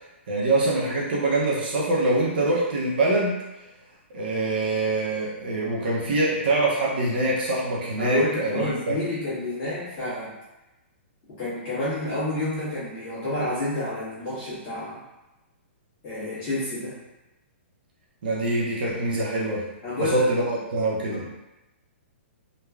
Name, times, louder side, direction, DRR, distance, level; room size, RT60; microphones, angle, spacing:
voice 1, 0.3-3.4 4.1-9.0 18.2-19.6 20.0-21.2, right 2 dB, 50° right, -5 dB, 0.6 m, -24 dB
voice 2, 8.0-10.3 11.4-15.0 16.0-17.0 19.8-20.3 21.1-21.3, left 2 dB, 25° left, -11 dB, 1.3 m, -29 dB
3.1 x 2.2 x 2.3 m, 1.0 s
hypercardioid pair, 170°, 7 cm